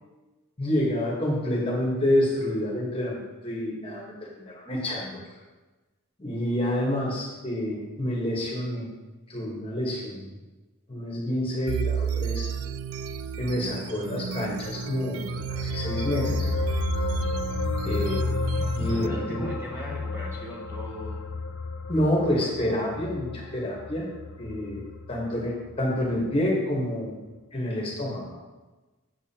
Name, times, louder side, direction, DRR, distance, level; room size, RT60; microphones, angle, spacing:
voice 1, 0.6-5.2 6.2-8.9 9.3-10.3 10.9-12.5 13.4-16.5 17.8-18.3 18.8-19.4 21.9-24.1 24.4-27.2 27.5-28.3, left 1 dB, 25° left, -3 dB, 1.3 m, -28 dB
sound 1, 11.7-19.1, right 6 dB, 75° right, 0.3 m, -32 dB
sound 2, 15.1-25.8 26.1-26.3, left 4 dB, 55° left, 0.4 m, -32 dB
voice 2, 18.5-21.2, equal, 10° right, -5 dB, 0.9 m, -39 dB
7.6 x 7.1 x 2.9 m, 1.2 s
head